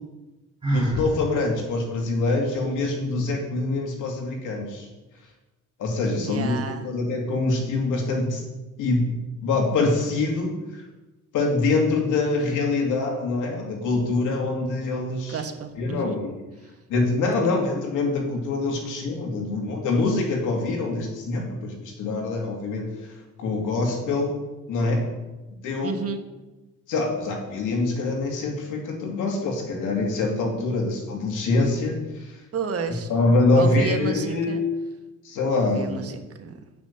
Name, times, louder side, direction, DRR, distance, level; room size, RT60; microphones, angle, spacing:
Sigh, 0.6-1.1, right 1 dB, 15° right, 3.8 m, -24 dB
voice 1, 0.7-4.9 5.8-8.4 8.8-9.1 9.4-10.8 11.3-15.4 15.8-16.4 16.9-22.9 23.4-24.3 24.7-25.1 25.6-26.0 26.9-32.4 33.1-34.7 35.2-36.0, left 3 dB, 85° left, 1 dB, 2.5 m, -24 dB
voice 2, 6.1-6.9 15.3-16.2 16.6-16.7 17.4-17.6 25.8-26.2 32.5-33.1 33.5-34.6 35.6-36.5, right 5 dB, 50° right, 6 dB, 1.3 m, -31 dB
9.4 x 6.0 x 6.8 m, 1.1 s
cardioid pair, 90°, 30 cm